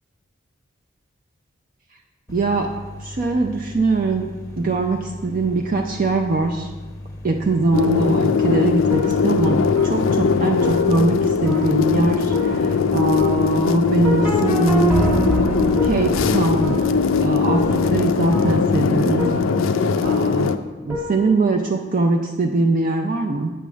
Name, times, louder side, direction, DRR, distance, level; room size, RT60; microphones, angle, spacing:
sound 1, 2.3-18.8, left 1 dB, 15° left, 0.7 m, -37 dB
voice 1, 2.3-2.7 3.0-4.3 4.6-6.7 7.2-15.1 15.8-16.8 17.2-19.4 20.0-20.6 20.8-23.5, right 2 dB, 45° right, 2 dB, 0.4 m, -22 dB
sound 2, 7.7-20.6, left 5 dB, 75° left, 0.4 m, -20 dB
sound 3, 8.4-21.6, equal, 5° right, 1.3 m, -28 dB
8.4 x 3.5 x 6.1 m, 1.3 s
head